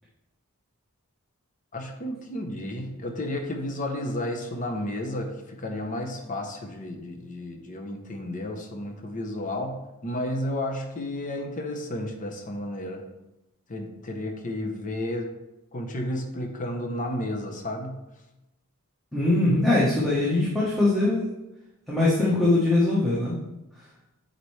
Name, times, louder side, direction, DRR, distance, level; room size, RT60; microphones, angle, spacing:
voice 1, 1.7-13.0 13.7-15.3 15.7-18.0, left 1 dB, 35° left, 3 dB, 0.8 m, -32 dB
voice 2, 19.1-21.2 21.9-23.4, left 2 dB, ahead, -8 dB, 1.1 m, -22 dB
8.0 x 4.1 x 3.2 m, 0.95 s
head